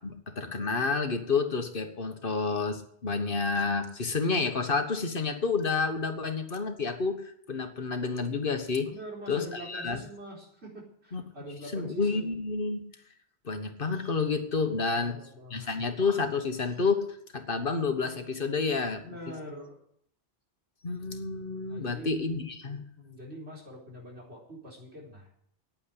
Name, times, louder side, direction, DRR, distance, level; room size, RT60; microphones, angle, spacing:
voice 1, 0.0-8.9 9.3-10.0 11.1-11.2 11.7-12.8 13.4-15.2 15.5-19.1 20.8-22.8, left 4 dB, 55° left, 7 dB, 1.5 m, -30 dB
voice 2, 8.8-12.4 14.9-15.8 19.0-19.8 21.7-22.1 22.9-25.3, equal, 80° right, -1 dB, 4.7 m, -44 dB
9.8 x 9.1 x 10.0 m, 0.69 s
omnidirectional pair, 1.1 m